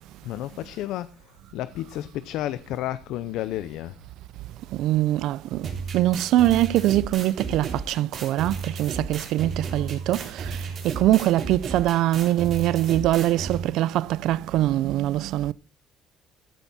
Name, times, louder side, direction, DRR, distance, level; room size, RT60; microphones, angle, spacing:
voice 1, 0.2-4.0, left 14 dB, 70° left, 0.6 m, -32 dB
voice 2, 4.7-5.7 5.9-15.5, right 14 dB, 65° right, 0.4 m, -23 dB
sound 1, 5.6-13.6, right 4 dB, 35° right, 3.7 m, -33 dB
14.5 x 8.1 x 4.1 m
cardioid pair, 175°, 0 cm